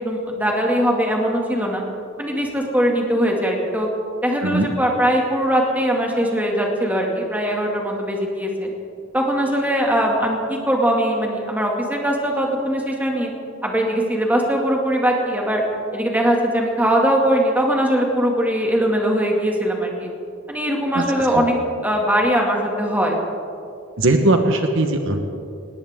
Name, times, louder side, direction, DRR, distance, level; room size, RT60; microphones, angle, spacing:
voice 1, 0.0-1.8 2.2-3.9 4.2-8.7 9.1-13.3 13.6-15.6 15.9-20.1 20.5-21.6 21.8-23.2, equal, 10° right, 0 dB, 2.2 m, -21 dB
voice 2, 24.0-25.2, right 2 dB, 65° right, 5 dB, 1.2 m, -19 dB
20.0 x 18.5 x 3.7 m, 2.5 s
head